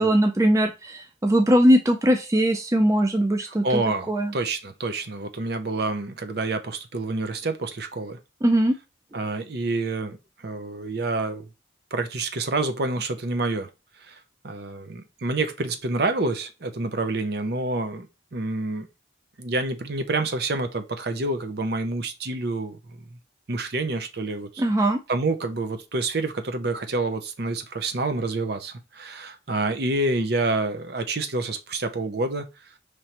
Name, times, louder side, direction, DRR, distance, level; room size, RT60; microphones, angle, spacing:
voice 1, 0.0-3.8 4.1-4.3 8.4-8.7 24.6-25.0, equal, 15° right, 0.4 m, -20 dB
voice 2, 3.5-8.2 9.1-11.5 11.9-13.7 14.1-14.2 14.4-18.1 18.3-18.9 19.4-23.2 23.5-24.6 25.1-32.4, right 2 dB, 55° right, 0.6 m, -28 dB
5.2 x 3.2 x 2.9 m
head